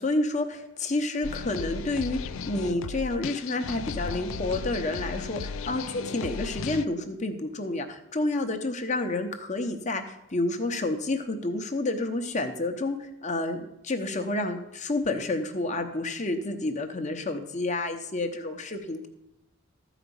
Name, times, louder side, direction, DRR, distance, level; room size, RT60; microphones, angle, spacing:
voice 1, 0.0-19.1, left 2 dB, 35° left, 6 dB, 0.9 m, -29 dB
sound 1, 1.2-6.8, left 5 dB, 70° left, 0.4 m, -35 dB
13.0 x 5.0 x 7.0 m, 0.88 s
head